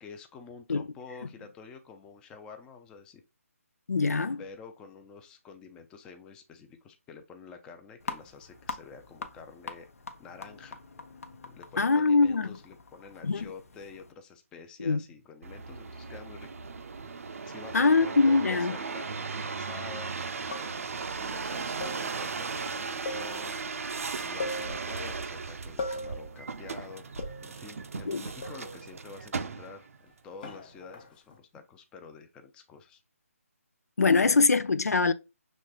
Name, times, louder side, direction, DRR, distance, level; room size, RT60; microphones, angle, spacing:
voice 1, 0.0-3.2 4.4-9.9 10.2-10.8 11.4-16.5 17.5-20.1 21.1-23.6 24.2-27.1 27.4-33.0, left 5 dB, 10° left, 0.5 m, -48 dB
voice 2, 3.9-4.4 11.8-12.6 13.2-13.5 14.8-15.0 17.7-18.8 28.1-28.2 34.0-35.1, left 4 dB, 85° left, 0.5 m, -23 dB
sound 1, 8.0-14.1, left 4 dB, 70° left, 0.8 m, -44 dB
sound 2, 15.4-30.0 30.6-31.1, right 4 dB, 65° right, 0.6 m, -37 dB
sound 3, 19.4-19.7 20.5-21.0 21.8-22.4 23.0-23.7 24.0-24.1 24.4-25.2 25.8-26.4 27.2-27.7 28.4-28.9 30.4-31.4, left 2 dB, 35° left, 0.8 m, -39 dB
6.2 x 3.2 x 2.3 m
figure-of-eight pair, 155°, 8 cm